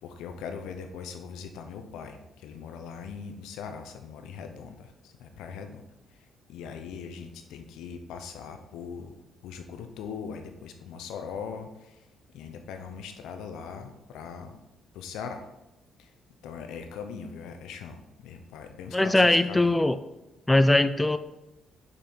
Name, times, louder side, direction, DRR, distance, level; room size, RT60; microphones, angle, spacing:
voice 1, 0.0-5.8 6.5-9.1 9.4-12.0 12.3-14.6 14.9-15.4 16.0-16.1 16.4-19.8, left 6 dB, 85° left, 6 dB, 0.7 m, -40 dB
voice 2, 18.9-20.0 20.5-21.2, left 2 dB, 15° left, 12 dB, 0.4 m, -21 dB
5.5 x 5.4 x 4.3 m, 0.97 s
cardioid pair, 75°, 0 cm